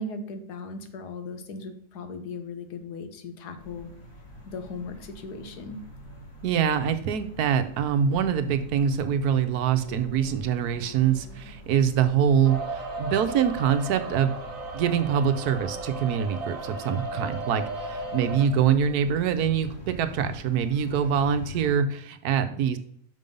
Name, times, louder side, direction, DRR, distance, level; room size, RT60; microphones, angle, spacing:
voice 1, 0.0-3.9 4.5-5.8, left 3 dB, 85° left, 7 dB, 1.6 m, -37 dB
sound 1, 3.6-21.7, left 1 dB, 60° left, 2.4 m, -45 dB
voice 2, 6.4-14.3 14.7-22.8, right 8 dB, 75° right, 10 dB, 1.2 m, -24 dB
sound 2, 12.4-18.5, right 2 dB, 55° right, 1.7 m, -35 dB
6.1 x 5.3 x 5.3 m, 0.65 s
omnidirectional pair, 1.7 m